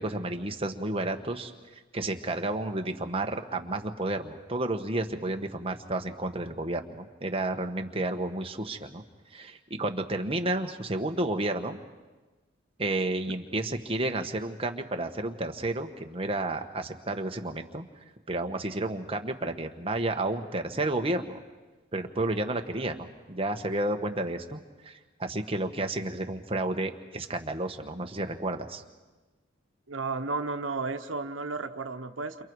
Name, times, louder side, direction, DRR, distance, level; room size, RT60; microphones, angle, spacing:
voice 1, 0.0-1.5 1.9-9.0 9.3-11.8 12.8-17.8 18.3-21.4 21.9-28.8, right 2 dB, 30° right, 5 dB, 1.3 m, -31 dB
voice 2, 29.9-32.4, right 3 dB, 85° right, 7 dB, 1.0 m, -33 dB
29.0 x 28.5 x 4.8 m, 1.2 s
head